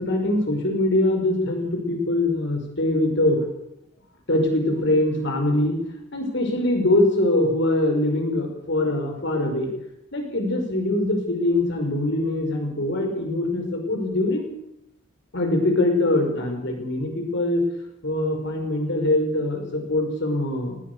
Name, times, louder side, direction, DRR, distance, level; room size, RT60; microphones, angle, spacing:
voice 1, 0.0-3.5 4.3-5.8 6.1-9.7 10.1-14.5 15.3-17.6 18.0-20.8, left 1 dB, 60° left, 3 dB, 5.7 m, -23 dB
19.5 x 17.0 x 8.3 m, 0.79 s
head